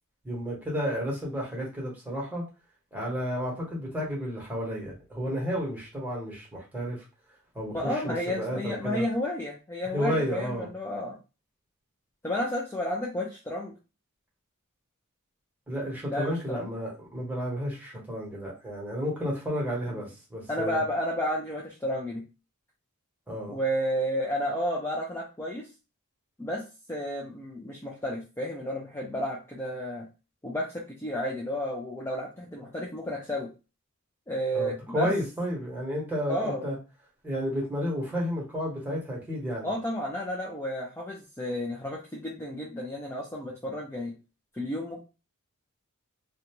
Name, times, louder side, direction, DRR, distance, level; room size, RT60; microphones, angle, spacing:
voice 1, 0.2-2.5 2.9-7.0 7.5-9.0 9.9-10.7 15.7-20.8 23.3-23.6 34.5-36.8 37.2-39.7, equal, 10° right, -4 dB, 1.1 m, -32 dB
voice 2, 7.7-11.2 12.2-13.7 16.1-16.7 19.9-20.0 20.5-22.2 23.5-25.7 26.4-30.1 30.4-33.5 34.3-35.1 36.3-36.7 39.6-44.1 44.5-45.0, equal, 10° left, -2 dB, 0.4 m, -32 dB
2.6 x 2.2 x 2.9 m, 0.30 s
head